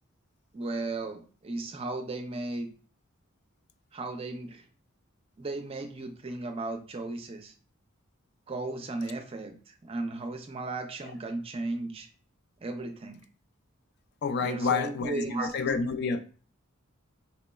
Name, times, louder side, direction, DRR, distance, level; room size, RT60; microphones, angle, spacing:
voice 1, 0.5-2.7 3.9-4.6 5.4-7.5 8.5-12.1 12.6-13.2 14.4-15.5, right 2 dB, 25° right, 0.4 m, -35 dB
voice 2, 14.2-16.2, left 5 dB, 50° left, 0.3 m, -29 dB
4.0 x 2.9 x 2.2 m
head